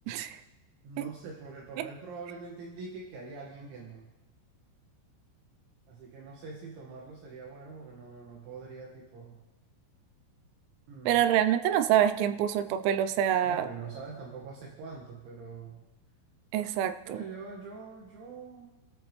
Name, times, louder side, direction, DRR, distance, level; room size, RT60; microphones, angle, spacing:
voice 1, 0.1-0.4 1.0-1.1 1.8-1.9 11.1-13.7 16.5-17.2, right 10 dB, 85° right, 10 dB, 3.5 m, -26 dB
voice 2, 0.8-4.1 5.9-9.4 10.9-11.2 13.4-15.9 17.0-18.7, right 4 dB, 65° right, -2 dB, 4.1 m, -44 dB
29.5 x 13.5 x 3.3 m, 1.0 s
omnidirectional pair, 6.0 m